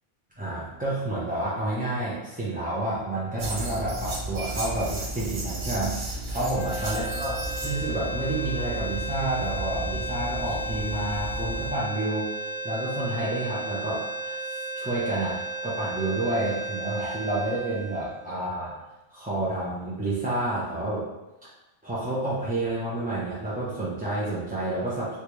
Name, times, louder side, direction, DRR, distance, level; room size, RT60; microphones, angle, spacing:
voice 1, 0.4-7.4 7.6-12.3 12.6-18.8 19.1-21.0 21.8-25.2, right 2 dB, 15° right, -9 dB, 0.3 m, -29 dB
sound 1, 3.4-11.7, right 1 dB, 75° right, 1.1 m, -34 dB
sound 2, 6.5-18.8, right 2 dB, 90° left, 1.0 m, -34 dB
3.5 x 2.6 x 3.0 m, 1.0 s
omnidirectional pair, 1.2 m